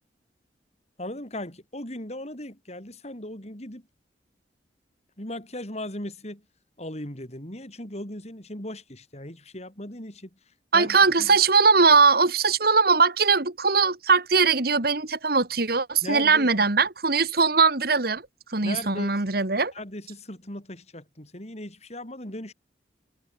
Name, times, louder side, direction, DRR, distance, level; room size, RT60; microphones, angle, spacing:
voice 1, 1.0-3.8 5.2-6.4 6.8-10.3 10.7-11.4 16.0-16.5 18.6-19.1 19.7-22.5, left 1 dB, 40° left, 6.1 m, -37 dB
voice 2, 10.7-18.2 18.5-19.7, right 4 dB, 60° right, 2.3 m, -20 dB
head